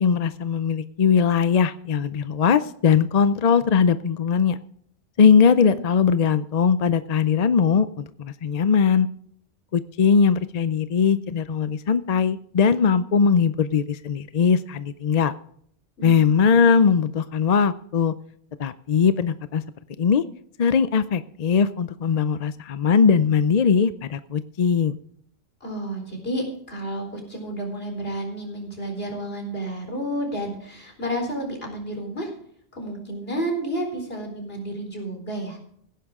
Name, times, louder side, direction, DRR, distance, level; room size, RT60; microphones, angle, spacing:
voice 1, 0.0-4.6 5.2-9.1 9.7-15.3 16.0-18.1 18.6-19.6 20.0-20.2 20.6-25.0, left 6 dB, 45° left, 13 dB, 0.6 m, -20 dB
voice 2, 25.6-32.3 32.7-35.6, right 1 dB, 65° left, 2 dB, 4.4 m, -31 dB
17.0 x 10.0 x 3.6 m, 0.66 s
omnidirectional pair, 1.1 m